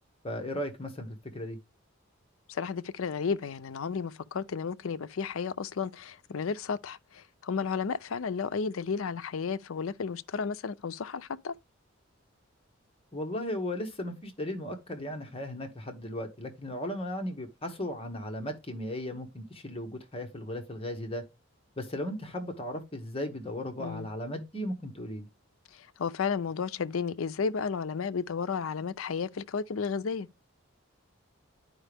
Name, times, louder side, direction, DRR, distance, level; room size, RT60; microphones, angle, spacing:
voice 1, 0.2-1.6 13.1-21.2 21.8-25.3, left 1 dB, 25° left, 1.2 m, -36 dB
voice 2, 2.5-11.5 23.8-24.1 25.7-30.3, left 5 dB, 75° left, 0.5 m, -33 dB
10.0 x 5.0 x 3.4 m
head